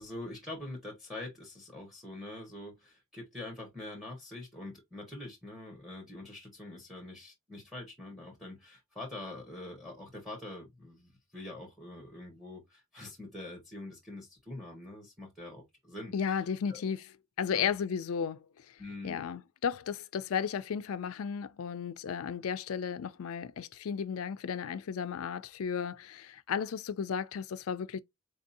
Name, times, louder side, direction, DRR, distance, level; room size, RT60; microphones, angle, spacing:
voice 1, 0.0-16.4 16.7-16.8 17.5-17.7 18.8-19.2, left 2 dB, ahead, 1.0 m, -44 dB
voice 2, 16.1-18.7 19.0-28.0, left 7 dB, 80° left, 0.4 m, -34 dB
4.0 x 2.6 x 2.6 m
head